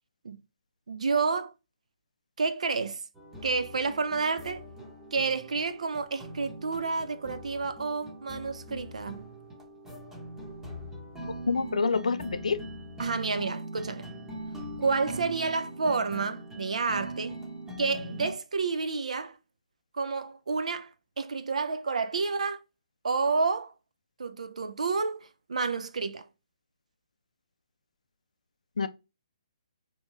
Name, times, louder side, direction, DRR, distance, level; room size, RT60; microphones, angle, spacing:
voice 1, 0.9-1.5 2.4-3.0 3.4-4.6 5.1-9.2 13.0-14.0 14.8-17.3 17.8-19.3 19.9-20.9 21.2-22.6 23.0-23.7 24.2-26.2, right 4 dB, 80° right, 0.4 m, -29 dB
sound 1, 3.2-18.3, right 1 dB, 10° right, 0.7 m, -41 dB
voice 2, 11.5-12.6 28.8-28.9, left 4 dB, 85° left, 0.3 m, -27 dB
2.8 x 2.3 x 2.9 m
hypercardioid pair, 145°, 4 cm